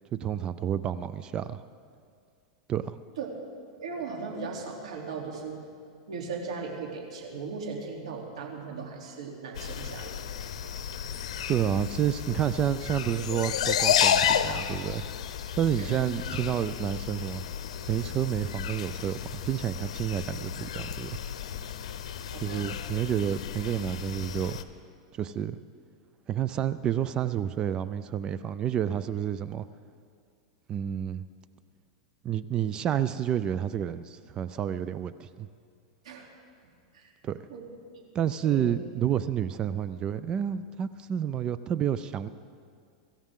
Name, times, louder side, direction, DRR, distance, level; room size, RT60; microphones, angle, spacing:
voice 1, 0.2-1.6 2.7-3.0 11.5-15.0 15.6-17.4 17.9-21.2 22.4-24.6 25.1-25.6 26.3-29.7 30.7-31.2 32.2-35.5 37.2-37.4 38.1-42.3, right 9 dB, 25° right, 14 dB, 0.4 m, -29 dB
voice 2, 3.8-5.6 6.1-10.1 15.8-16.1 22.3-22.7 36.0-36.3 36.9-37.1 37.5-37.7 38.4-38.7, right 5 dB, 90° right, 0 dB, 3.1 m, -37 dB
sound 1, 9.5-24.6, left 9 dB, 85° left, 0.8 m, -32 dB
24.5 x 14.0 x 3.7 m, 2.3 s
supercardioid pair, 150°, 3 cm